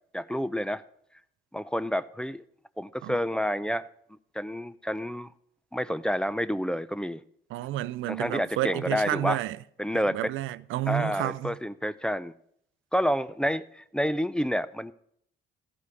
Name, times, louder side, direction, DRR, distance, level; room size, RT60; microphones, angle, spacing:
voice 1, 0.1-0.8 1.5-2.4 2.8-3.9 4.3-5.3 5.7-7.2 8.1-9.4 9.8-10.3 10.9-12.3 12.9-14.9, equal, 5° left, 0.4 m, -29 dB
voice 2, 7.5-9.6 9.9-11.5, right 14 dB, 85° right, 0.4 m, -30 dB
13.5 x 4.9 x 6.9 m
cardioid pair, 90°, 20 cm